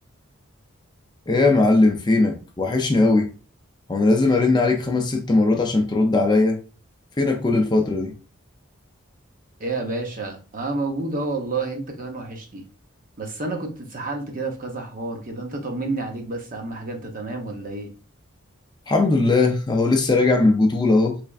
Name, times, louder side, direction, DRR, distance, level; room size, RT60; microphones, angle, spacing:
voice 1, 1.3-3.3 3.9-6.6 7.2-8.1 18.9-21.2, left 3 dB, 20° left, 0.4 m, -19 dB
voice 2, 9.6-12.6 13.2-17.9, right 3 dB, 40° right, 0.7 m, -30 dB
3.6 x 3.3 x 2.4 m
head